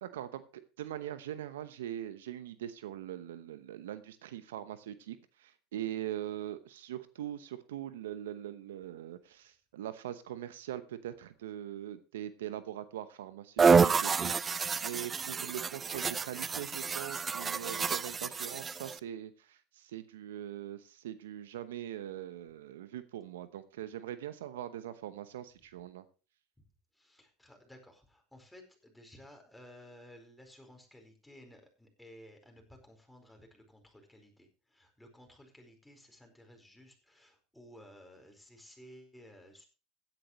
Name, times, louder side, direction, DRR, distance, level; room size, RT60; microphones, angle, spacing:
voice 1, 0.0-26.1, right 11 dB, 80° right, 13 dB, 0.9 m, -42 dB
sound 1, 13.6-19.0, right 5 dB, 25° right, 0.5 m, -29 dB
voice 2, 26.9-39.6, equal, 5° left, 3 dB, 4.6 m, -56 dB
16.0 x 10.5 x 3.1 m, 0.32 s
hypercardioid pair, 80°, 0 cm